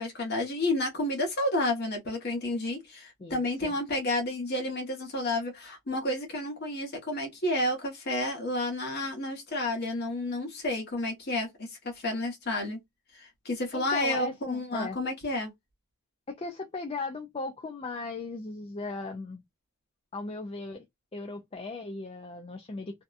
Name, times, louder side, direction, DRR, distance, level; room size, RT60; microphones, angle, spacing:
voice 1, 0.0-12.8 13.1-15.5, left 1 dB, 50° left, 1.1 m, -31 dB
voice 2, 3.2-3.8 13.7-15.0 16.3-19.4 20.1-20.8 21.1-23.0, left 3 dB, 25° left, 0.4 m, -37 dB
2.7 x 2.2 x 2.4 m
head